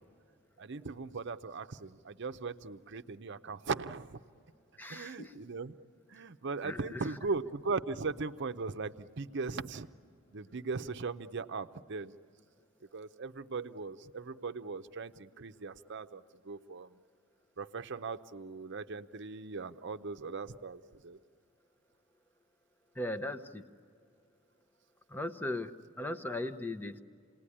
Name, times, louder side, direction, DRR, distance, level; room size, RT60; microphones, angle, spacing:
voice 1, 0.6-4.2 4.9-5.8 6.1-9.9 10.3-12.1 12.9-17.0 17.6-21.2, right 4 dB, 60° right, 10 dB, 0.7 m, -39 dB
voice 2, 4.8-5.4 6.6-7.0 23.0-23.7 25.1-27.0, left 1 dB, 10° left, 10 dB, 0.8 m, -38 dB
29.0 x 19.0 x 9.9 m, 2.3 s
head